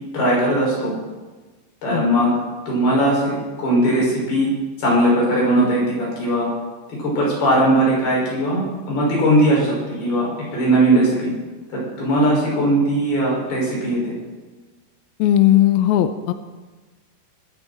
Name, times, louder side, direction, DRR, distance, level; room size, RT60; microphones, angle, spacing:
voice 1, 0.1-0.9 1.8-2.3 2.7-4.5 4.8-6.5 7.0-10.3 10.5-11.3 11.7-14.1, right 1 dB, 65° left, -4 dB, 8.0 m, -19 dB
voice 2, 15.2-16.3, left 12 dB, 80° left, 9 dB, 2.3 m, -16 dB
21.5 x 14.0 x 4.4 m, 1.3 s
omnidirectional pair, 4.9 m